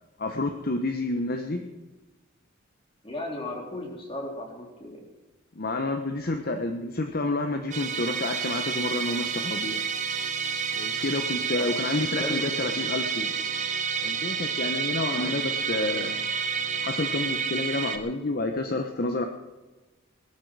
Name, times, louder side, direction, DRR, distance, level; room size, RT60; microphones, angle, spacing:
voice 1, 0.2-1.7 5.5-9.8 10.7-13.3 14.0-16.1 16.6-19.3, left 2 dB, 50° left, 5 dB, 1.0 m, -29 dB
voice 2, 3.0-5.0 11.6-11.7 12.1-12.5 15.1-15.3, left 1 dB, 30° left, 0 dB, 3.8 m, -35 dB
Musical instrument, 7.7-18.0, right 6 dB, 35° right, 1.3 m, -29 dB
19.0 x 13.0 x 4.8 m, 1.2 s
head